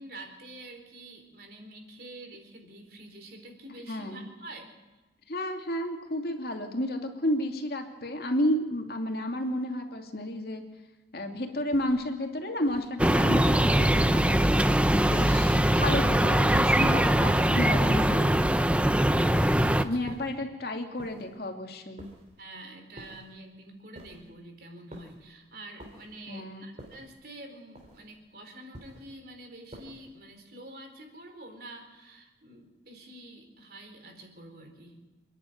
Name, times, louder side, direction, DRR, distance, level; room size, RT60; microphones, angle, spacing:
voice 1, 0.0-4.7 19.6-20.1 22.4-35.0, right 1 dB, 55° right, 4 dB, 4.2 m, -47 dB
voice 2, 3.9-4.3 5.3-10.6 11.1-14.6 15.1-18.4 19.8-22.1 26.3-26.7, left 1 dB, 55° left, 3 dB, 2.6 m, -31 dB
sound 1, 11.7-12.1 12.6-13.0 13.6-13.9 14.5-14.9 15.4-15.9 16.4-16.8 17.3-17.7 18.2-18.6 19.2-19.5 20.1-20.4 21.0-21.4 22.0-22.4 23.0-23.3 23.9-24.4 24.9-25.3 25.8-26.2 26.8-27.2 27.7-28.1 28.7-29.1 29.7-30.1, equal, 40° right, 3.5 m, -48 dB
sound 2, 13.0-19.8, right 1 dB, 5° right, 0.6 m, -22 dB
28.0 x 10.5 x 9.3 m, 1.2 s
head